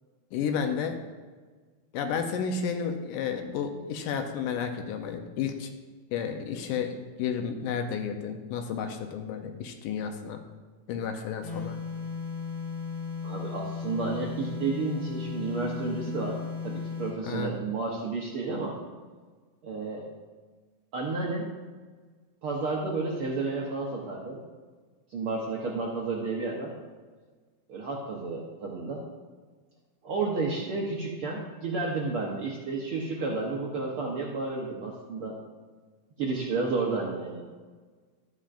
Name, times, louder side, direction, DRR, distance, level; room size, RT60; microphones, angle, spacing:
voice 1, 0.3-1.0 1.9-5.7 6.1-10.4 10.9-11.8 17.2-17.6, left 6 dB, 80° left, 5 dB, 2.3 m, -32 dB
sound 1, 11.4-17.2, left 5 dB, 45° left, 1.7 m, -35 dB
voice 2, 13.2-18.8 19.6-20.1 20.9-21.5 22.4-24.4 25.1-26.7 27.7-29.0 30.0-35.4 36.2-37.4, right 3 dB, 75° right, -2 dB, 1.2 m, -31 dB
12.5 x 8.6 x 2.5 m, 1.4 s
omnidirectional pair, 3.8 m